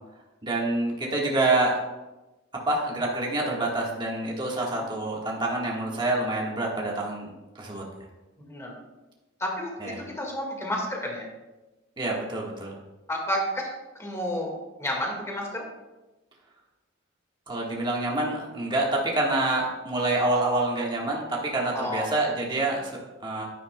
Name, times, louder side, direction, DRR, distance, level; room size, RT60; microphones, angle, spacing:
voice 1, 0.4-1.8 2.6-7.8 9.8-10.0 12.0-12.7 17.5-23.4, right 2 dB, 25° right, -3 dB, 1.4 m, -27 dB
voice 2, 8.4-8.8 9.4-11.3 13.1-13.7 14.0-14.5 14.8-15.6 21.7-22.1, equal, 15° left, 0 dB, 1.7 m, -31 dB
10.5 x 9.3 x 2.2 m, 1.1 s
head